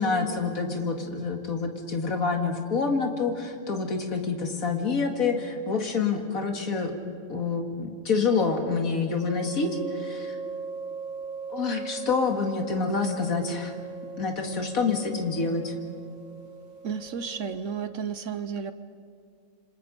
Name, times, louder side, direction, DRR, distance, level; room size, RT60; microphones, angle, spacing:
voice 1, 0.0-6.9 7.3-10.4 11.5-13.7 14.2-15.7, left 4 dB, 90° left, 3 dB, 2.4 m, -27 dB
sound 1, 9.2-17.7, right 4 dB, 10° right, 4.9 m, -39 dB
voice 2, 16.8-18.7, right 6 dB, 65° right, 11 dB, 1.1 m, -32 dB
28.5 x 25.5 x 5.2 m, 2.4 s
omnidirectional pair, 1.4 m